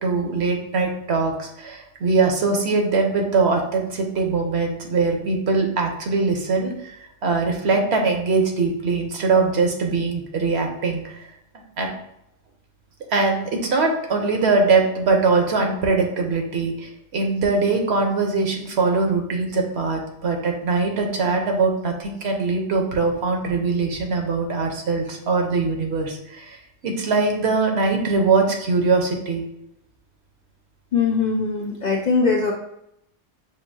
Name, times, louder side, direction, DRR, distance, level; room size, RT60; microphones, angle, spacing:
voice 1, 0.0-6.9 7.2-11.3 11.8-11.9 13.1-26.6 26.8-29.4 32.2-32.3, right 4 dB, 65° right, 2 dB, 1.0 m, -22 dB
voice 2, 30.9-32.5, left 5 dB, 60° left, 0 dB, 0.5 m, -21 dB
6.3 x 2.7 x 2.7 m, 0.79 s
omnidirectional pair, 1.2 m